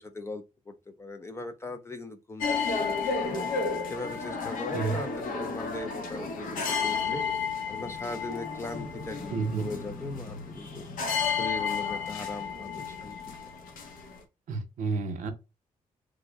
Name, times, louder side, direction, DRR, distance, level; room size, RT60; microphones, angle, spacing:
voice 1, 0.0-3.5 3.9-7.2 7.7-10.9 11.3-13.2, left 2 dB, 20° left, 0.3 m, -40 dB
sound 1, 2.4-14.2, left 5 dB, 80° left, 0.8 m, -32 dB
voice 2, 9.3-9.7 14.5-15.3, right 4 dB, 65° right, 0.6 m, -30 dB
3.5 x 2.0 x 3.3 m
wide cardioid pair, 180°, 14 cm